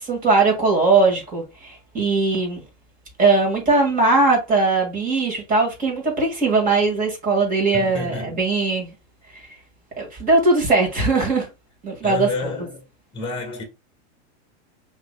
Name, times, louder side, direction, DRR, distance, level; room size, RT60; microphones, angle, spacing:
voice 1, 0.0-2.6 3.2-8.9 9.3-9.4 10.0-11.5 11.8-12.5, right 3 dB, 25° right, 2.0 m, -20 dB
voice 2, 7.7-8.4 12.0-12.9 13.1-13.6, left 3 dB, 15° left, 1.3 m, -30 dB
5.7 x 3.0 x 2.2 m
supercardioid pair, 135°, 35 cm